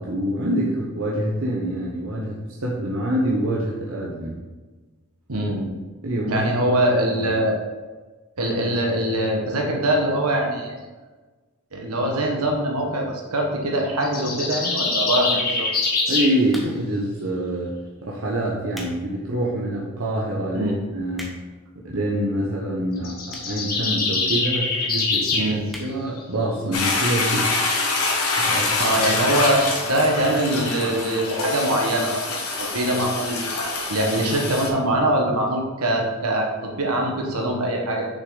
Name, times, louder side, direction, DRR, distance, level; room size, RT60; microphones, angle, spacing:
voice 1, 0.0-4.4 6.0-6.9 7.1-7.3 16.1-17.8 18.0-21.4 21.8-25.5 25.8-27.6 28.4-28.7, right 1 dB, 65° right, -4 dB, 1.0 m, -26 dB
voice 2, 5.3-5.6 6.3-7.6 8.4-10.8 11.7-15.7 20.5-20.7 25.3-25.6 28.8-32.3 32.6-33.5 33.9-38.1, right 1 dB, 85° right, 0 dB, 1.5 m, -23 dB
sound 1, 14.0-16.3 23.0-25.5, left 3 dB, 45° left, 1.8 m, -24 dB
sound 2, 16.5-17.0 17.7-17.9 18.5-19.0 19.4-19.5 20.1-20.2 20.4-20.5 20.8-21.6 22.4-22.5 23.3-23.6 23.9-24.0 24.2-24.3 24.5-24.6 24.9-25.2 25.7-25.9 26.3-26.4 26.6-26.7, equal, ahead, 1.0 m, -39 dB
Toilet flush, 26.7-34.7, left 3 dB, 85° left, 1.4 m, -25 dB
6.4 x 6.3 x 3.9 m, 1.3 s
head